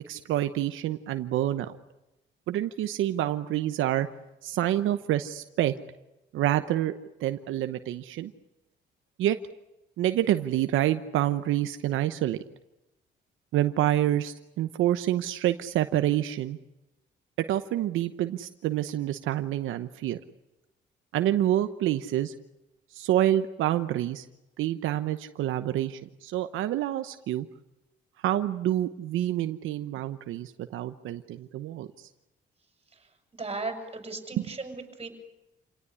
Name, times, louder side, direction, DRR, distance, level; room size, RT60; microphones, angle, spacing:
voice 1, 0.1-1.7 2.5-4.1 4.4-5.7 6.3-6.9 7.2-8.3 9.2-9.4 10.0-12.4 13.5-16.6 17.5-20.2 21.1-22.3 22.9-24.3 24.6-27.5 28.2-32.1 34.4-34.5, right 13 dB, 85° right, 9 dB, 1.0 m, -27 dB
voice 2, 33.3-35.1, right 3 dB, 30° right, 5 dB, 6.7 m, -36 dB
27.5 x 18.0 x 9.9 m, 0.95 s
cardioid pair, 90°, 20 cm